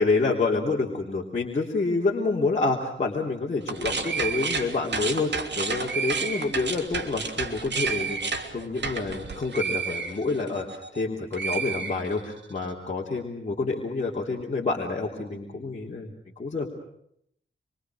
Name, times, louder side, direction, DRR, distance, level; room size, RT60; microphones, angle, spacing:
voice 1, 0.0-8.2 8.5-16.1 16.4-16.7, left 3 dB, 35° left, -3 dB, 3.6 m, -28 dB
sound 1, 3.6-11.0 11.3-12.5, right 5 dB, 60° right, 3.1 m, -31 dB
27.0 x 24.0 x 6.5 m, 0.72 s
wide cardioid pair, 110°, 20 cm